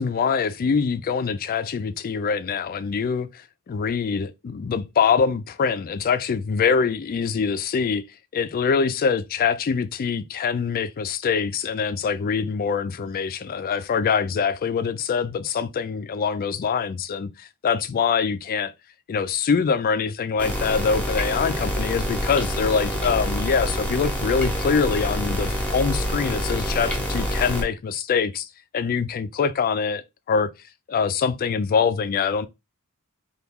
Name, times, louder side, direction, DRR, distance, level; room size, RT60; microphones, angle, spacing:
voice 1, 0.0-8.0 8.3-18.7 19.1-28.5 28.7-30.5 30.9-32.5, left 6 dB, 40° left, 0.3 m, -24 dB
sound 1, 20.4-27.6, equal, 5° left, 0.8 m, -27 dB
3.0 x 2.3 x 3.5 m
head